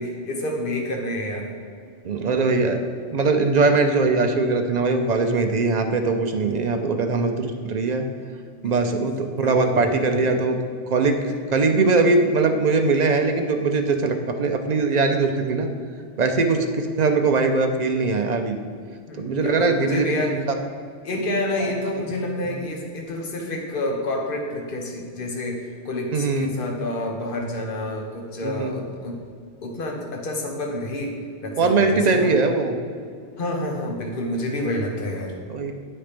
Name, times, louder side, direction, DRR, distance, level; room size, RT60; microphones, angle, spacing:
voice 1, 0.0-1.5 8.6-8.7 9.2-10.4 19.1-20.4 21.0-29.1 29.6-32.4 33.4-35.4, left 1 dB, 50° left, 1 dB, 1.2 m, -29 dB
voice 2, 2.0-2.8 3.1-8.0 8.6-10.6 10.9-15.7 16.2-18.6 19.2-20.4 26.1-26.5 28.4-28.8 31.6-32.8 35.5-35.7, right 3 dB, 50° right, 5 dB, 0.5 m, -21 dB
9.2 x 4.3 x 5.1 m, 2.2 s
omnidirectional pair, 1.2 m